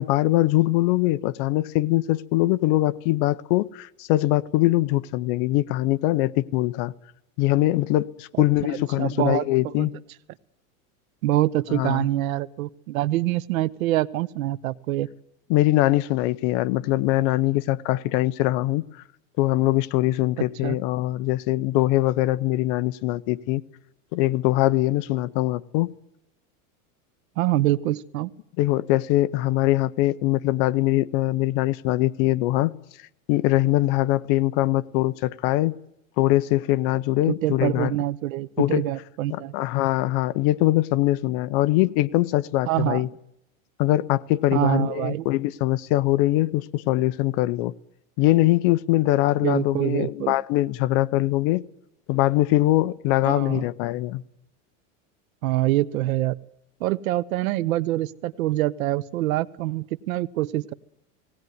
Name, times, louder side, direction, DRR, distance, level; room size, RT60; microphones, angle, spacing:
voice 1, 0.0-6.9 7.4-9.9 11.7-12.0 15.5-18.8 19.4-23.6 24.1-25.9 28.6-32.7 33.3-35.8 36.2-37.9 38.6-38.8 39.3-43.1 43.8-47.7 48.2-51.6 52.1-54.2, left 16 dB, 45° left, 0.7 m, -22 dB
voice 2, 8.7-9.9 11.2-15.1 20.6-20.8 27.4-28.3 37.3-39.5 42.7-43.1 44.5-45.3 49.4-50.4 53.3-53.6 55.4-56.4 56.8-60.7, right 15 dB, 90° right, 1.0 m, -25 dB
18.5 x 18.5 x 9.4 m
supercardioid pair, 165°, 40 cm